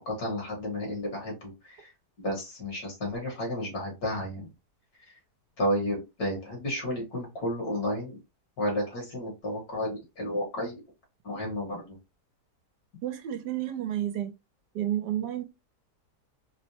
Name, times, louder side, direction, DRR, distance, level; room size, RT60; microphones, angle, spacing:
voice 1, 0.0-1.9 2.2-4.5 5.6-8.2 8.6-10.8 11.2-12.0, left 1 dB, 60° left, 2.4 m, -32 dB
voice 2, 13.0-14.3 14.7-15.4, right 12 dB, 80° right, 1.3 m, -31 dB
4.9 x 2.1 x 2.9 m
omnidirectional pair, 1.8 m